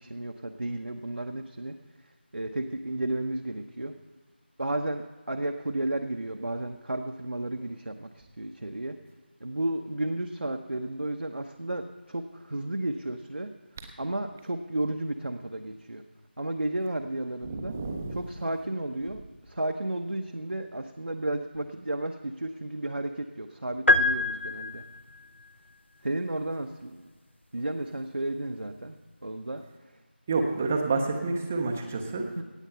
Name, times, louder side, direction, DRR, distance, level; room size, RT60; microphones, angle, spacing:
voice 1, 0.0-1.7 2.3-3.9 4.6-9.0 9.4-13.5 14.0-16.0 16.4-17.7 18.1-19.2 19.5-24.8 26.0-27.1 27.5-28.9 29.2-29.6 32.4-32.5, right 1 dB, 80° right, 4 dB, 0.9 m, -33 dB
voice 2, 17.4-18.2 30.3-32.3, right 3 dB, 10° right, 5 dB, 0.5 m, -29 dB
sound 1, 23.9-25.2, left 2 dB, 90° left, 0.6 m, -24 dB
17.5 x 7.5 x 5.6 m, 1.4 s
figure-of-eight pair, 170°, 6 cm